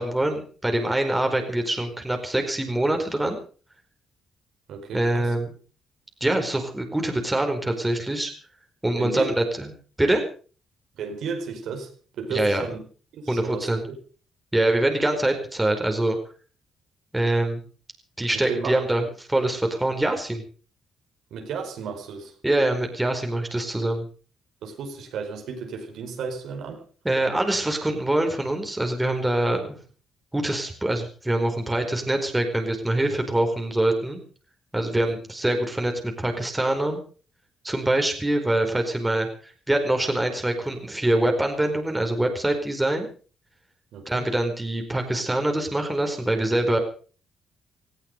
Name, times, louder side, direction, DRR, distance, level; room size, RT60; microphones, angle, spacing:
voice 1, 0.0-3.4 4.9-5.5 6.2-8.3 8.8-9.7 10.0-10.2 12.3-12.6 13.3-13.9 14.5-16.2 17.1-17.6 18.2-20.4 22.4-24.1 27.0-29.8 30.3-34.2 34.7-37.0 37.6-43.1 44.1-46.8, right 1 dB, 10° right, 4 dB, 4.6 m, -24 dB
voice 2, 4.7-5.3 9.0-9.3 11.0-12.8 13.1-13.7 18.3-19.1 21.3-22.3 24.6-26.8 34.9-35.0 43.9-44.3, right 5 dB, 75° right, 4 dB, 4.8 m, -34 dB
18.0 x 15.0 x 5.3 m, 0.40 s
cardioid pair, 90°, 0 cm